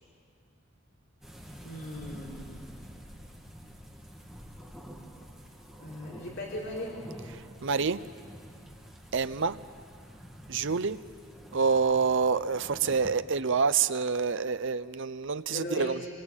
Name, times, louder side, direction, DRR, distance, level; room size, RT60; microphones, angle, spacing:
sound 1, 1.2-13.1, equal, ahead, 2.4 m, -48 dB
voice 1, 1.6-2.5 5.8-7.0 15.5-16.1, left 1 dB, 60° left, -4 dB, 4.4 m, -38 dB
voice 2, 7.6-8.0 9.1-9.6 10.5-11.0 11.5-16.0, right 5 dB, 60° right, 13 dB, 0.7 m, -27 dB
26.5 x 22.0 x 8.9 m, 2.3 s
head